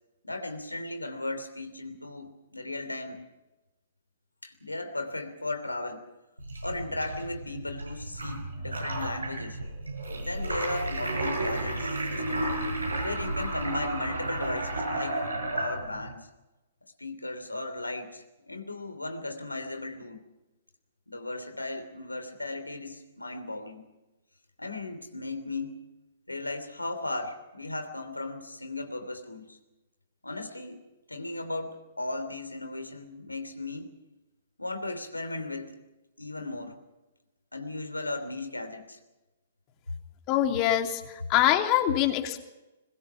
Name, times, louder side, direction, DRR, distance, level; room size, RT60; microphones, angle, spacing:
voice 1, 0.2-3.3 4.4-6.1 6.6-9.6 10.1-12.5 13.0-15.2 15.5-16.3 17.0-20.2 21.1-23.9 24.6-25.8 26.3-29.6 30.2-30.8 31.1-33.9 34.6-35.8 36.2-36.8 37.5-39.0, left 2 dB, 90° left, 7 dB, 3.2 m, -36 dB
sound 1, 6.4-16.1, right 2 dB, 85° right, 7.4 m, -32 dB
voice 2, 40.3-42.4, left 12 dB, 35° left, 4 dB, 2.9 m, -24 dB
22.0 x 21.0 x 5.9 m, 1.0 s
figure-of-eight pair, 115°, 0 cm